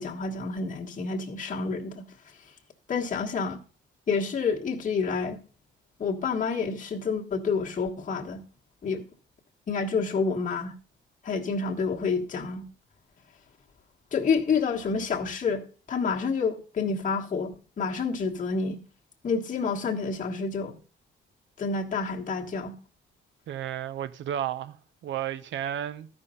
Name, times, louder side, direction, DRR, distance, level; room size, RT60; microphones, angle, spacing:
voice 1, 0.0-2.0 2.9-3.6 4.1-5.4 6.0-8.4 8.8-9.0 9.7-10.7 11.2-12.6 14.1-15.6 15.9-18.8 19.2-20.8 21.6-22.7, left 5 dB, 40° left, 1.4 m, -28 dB
voice 2, 23.5-26.1, right 10 dB, 70° right, 0.8 m, -33 dB
12.5 x 5.3 x 5.5 m
cardioid pair, 90°, 20 cm